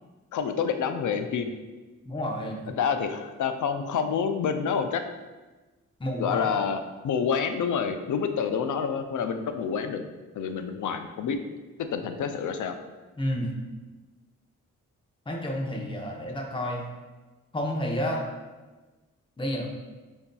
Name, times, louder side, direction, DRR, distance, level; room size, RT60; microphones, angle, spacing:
voice 1, 0.3-1.5 2.8-5.0 6.2-10.0 10.3-11.4 11.8-12.7, left 6 dB, 70° left, 7 dB, 0.4 m, -28 dB
voice 2, 2.0-2.8 6.0-6.5 13.2-13.5 15.3-16.8 17.5-18.2 19.4-19.7, equal, 15° left, -1 dB, 0.8 m, -30 dB
6.7 x 2.7 x 2.3 m, 1.2 s
cardioid pair, 70°, 32 cm